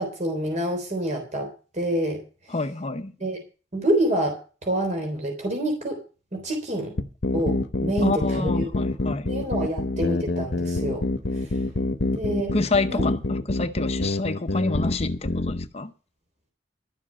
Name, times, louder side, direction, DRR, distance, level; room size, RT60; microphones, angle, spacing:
voice 1, 0.0-2.2 3.2-3.4 3.7-4.4 4.6-6.0 6.3-7.0 7.3-8.8 9.3-11.1 12.1-12.5 12.9-13.1, right 1 dB, 40° right, 3.5 m, -27 dB
voice 2, 2.5-3.1 8.0-9.3 12.5-15.9, left 3 dB, 35° left, 0.8 m, -28 dB
sound 1, 7.0-15.7, left 2 dB, 75° left, 0.9 m, -26 dB
12.5 x 7.3 x 7.4 m
head